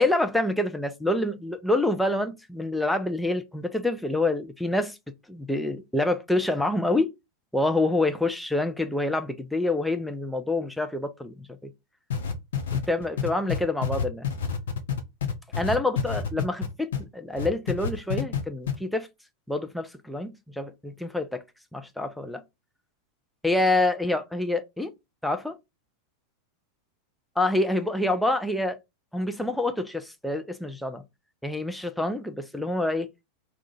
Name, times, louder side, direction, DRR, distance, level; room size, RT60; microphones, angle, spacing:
voice 1, 0.0-5.0 5.3-7.1 7.5-11.3 11.6-11.7 12.7-14.3 15.6-19.1 19.5-21.4 21.7-22.4 23.4-24.9 25.2-25.6 27.4-28.8 29.1-31.0 31.4-33.1, left 2 dB, ahead, 0.4 m, -27 dB
sound 1, 12.1-17.0 17.4-18.4 18.7-18.8, left 7 dB, 60° left, 0.6 m, -28 dB
2.7 x 2.4 x 3.8 m
figure-of-eight pair, 90°, 0 cm